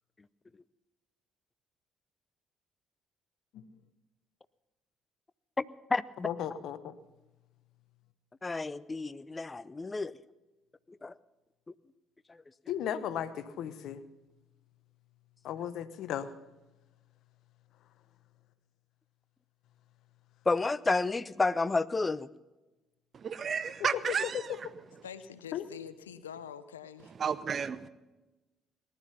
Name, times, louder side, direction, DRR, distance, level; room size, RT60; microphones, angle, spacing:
voice 1, 5.6-6.3 8.4-10.1 10.9-11.1 12.3-12.4 20.5-22.3, left 3 dB, 25° left, 0.6 m, -31 dB
voice 2, 6.2-6.9 12.7-14.0 15.4-16.3 23.8-23.9 24.3-24.4 25.5-25.7, left 9 dB, 65° left, 0.9 m, -35 dB
voice 3, 23.1-24.4 27.2-27.9, right 6 dB, 45° right, 0.8 m, -32 dB
voice 4, 25.0-27.1, left 8 dB, 90° left, 0.6 m, -45 dB
19.0 x 11.5 x 5.7 m
hypercardioid pair, 50°, 0 cm